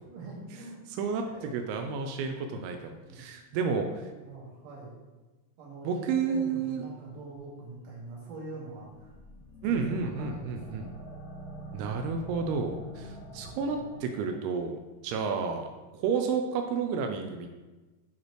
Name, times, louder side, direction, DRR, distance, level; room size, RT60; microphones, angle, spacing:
voice 1, 0.1-0.8 1.3-1.8 3.0-3.2 3.5-5.0 5.6-9.1 9.7-10.5 10.7-10.9, right 2 dB, 50° right, -4 dB, 2.3 m, -44 dB
voice 2, 1.5-3.9 5.8-6.8 9.6-10.9 11.7-15.7 15.9-17.5, right 5 dB, 85° right, 5 dB, 2.5 m, -31 dB
sound 1, 8.8-14.4, equal, 55° left, 1.8 m, -46 dB
10.5 x 4.1 x 3.1 m, 1.2 s
omnidirectional pair, 4.5 m